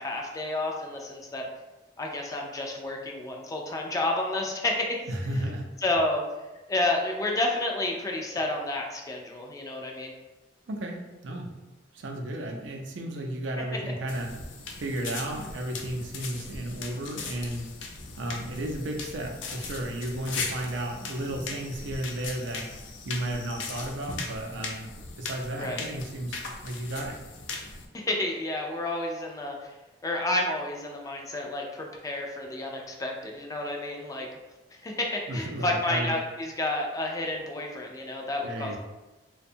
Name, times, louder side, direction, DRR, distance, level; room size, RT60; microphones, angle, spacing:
voice 1, 0.0-1.5 2.0-5.0 5.8-6.2 6.7-10.1 25.6-25.9 27.9-29.7 30.0-34.3 34.8-38.8, left 2 dB, 20° left, 1 dB, 0.3 m, -30 dB
voice 2, 5.1-5.7 10.7-11.5 11.9-14.3 14.8-17.7 18.2-22.7 23.1-24.9 25.2-27.2 35.3-36.1 38.4-38.8, right 1 dB, 80° right, 1 dB, 0.4 m, -33 dB
sound 1, 14.1-27.9, left 4 dB, 85° left, 0.4 m, -39 dB
2.5 x 2.2 x 2.6 m, 1.1 s
head